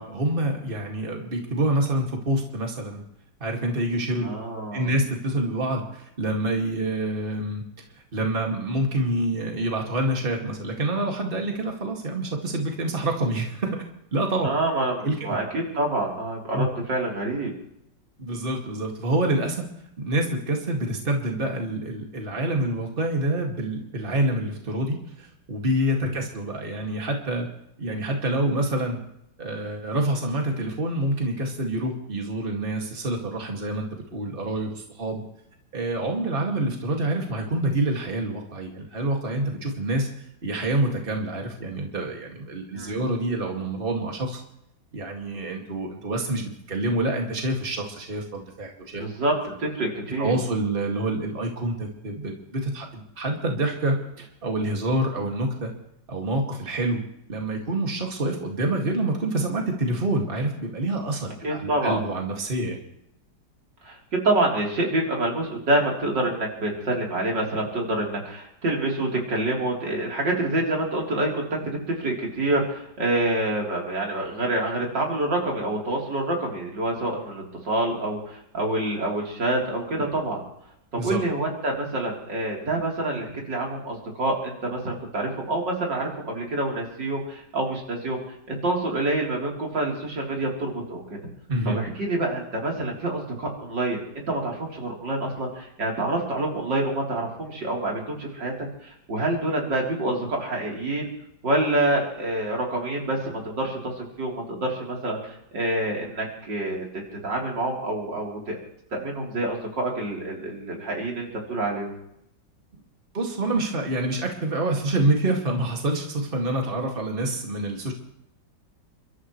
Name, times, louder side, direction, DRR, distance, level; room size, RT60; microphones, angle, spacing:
voice 1, 0.0-3.0 3.4-4.3 4.7-7.6 8.1-13.8 14.1-14.5 15.0-15.2 16.5-16.7 18.2-19.6 20.0-27.5 27.8-29.0 29.4-35.2 35.7-40.1 40.4-44.4 44.9-49.0 50.2-55.7 56.1-57.0 57.3-62.8 81.0-81.2 91.5-91.8 113.1-117.9, right 1 dB, 30° right, 1 dB, 2.4 m, -27 dB
voice 2, 4.2-4.9 14.4-17.5 42.7-43.0 49.0-49.3 49.6-50.4 61.4-62.0 63.8-64.0 64.2-80.4 80.9-88.2 88.5-91.0 91.7-101.1 101.4-106.8 107.2-108.6 108.9-111.9, right 2 dB, 80° right, -2 dB, 4.4 m, -27 dB
30.0 x 13.0 x 3.2 m, 0.79 s
omnidirectional pair, 1.9 m